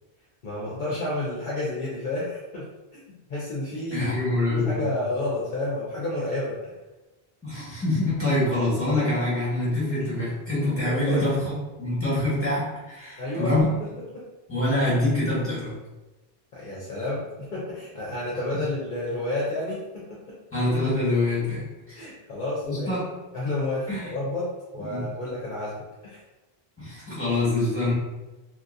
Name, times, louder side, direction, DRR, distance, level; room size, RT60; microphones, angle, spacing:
voice 1, 0.4-2.7 3.3-4.1 4.5-6.7 10.9-11.3 13.2-13.8 14.1-14.3 16.5-20.4 21.9-23.0 23.3-25.7 26.0-26.2, left 2 dB, 55° left, -6 dB, 0.7 m, -30 dB
voice 2, 3.9-4.9 7.4-13.7 14.5-15.7 18.5-18.6 20.5-21.6 21.9-22.0 22.6-23.1 23.9-24.1 24.9-25.0 26.8-27.9, left 2 dB, 15° left, -10 dB, 1.3 m, -25 dB
2.8 x 2.6 x 2.6 m, 1.1 s
omnidirectional pair, 1.0 m